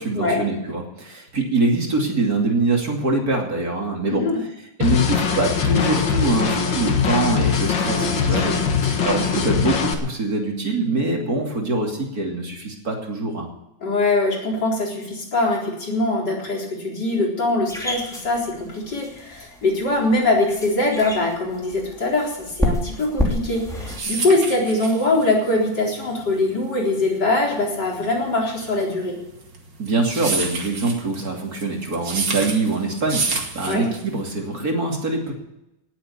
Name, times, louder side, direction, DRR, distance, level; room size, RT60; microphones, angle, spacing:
voice 1, 0.0-4.2 4.8-8.6 9.0-13.5 29.8-35.3, right 3 dB, 50° right, 1 dB, 3.3 m, -24 dB
voice 2, 4.1-4.4 7.9-8.5 13.8-29.2 33.6-33.8, left 2 dB, 60° left, -2 dB, 4.6 m, -22 dB
sound 1, 4.8-9.9, left 6 dB, 80° left, 2.3 m, -21 dB
sound 2, 17.7-24.0, left 1 dB, ahead, 2.8 m, -29 dB
sound 3, 23.5-34.3, right 4 dB, 70° right, 2.8 m, -29 dB
18.5 x 8.2 x 7.1 m, 0.88 s
omnidirectional pair, 2.0 m